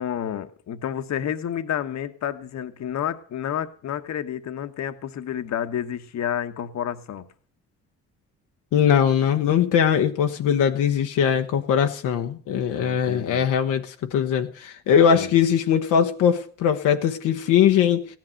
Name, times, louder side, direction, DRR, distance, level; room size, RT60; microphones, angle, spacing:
voice 1, 0.0-7.3 12.7-13.5 15.1-15.4, left 9 dB, 65° left, 9 dB, 1.3 m, -30 dB
voice 2, 8.7-18.1, left 8 dB, 90° left, 4 dB, 1.1 m, -21 dB
15.5 x 10.5 x 6.5 m, 0.43 s
cardioid pair, 90°, 30 cm